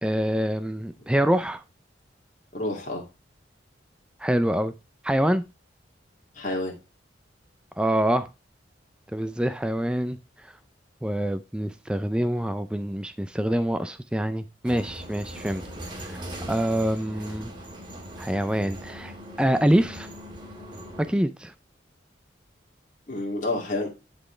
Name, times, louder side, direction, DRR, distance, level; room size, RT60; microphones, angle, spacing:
voice 1, 0.0-1.6 4.2-4.7 5.0-5.4 7.8-8.3 9.1-10.2 11.0-15.6 16.0-16.2 16.5-17.5 18.2-19.1 19.4-20.1 21.1-21.5, right 1 dB, 5° right, 0.3 m, -25 dB
voice 2, 2.5-3.0 6.3-6.7 23.1-23.9, left 2 dB, 40° left, 2.2 m, -29 dB
sound 1, 14.6-21.1, equal, 25° right, 1.7 m, -40 dB
11.0 x 4.2 x 3.2 m
head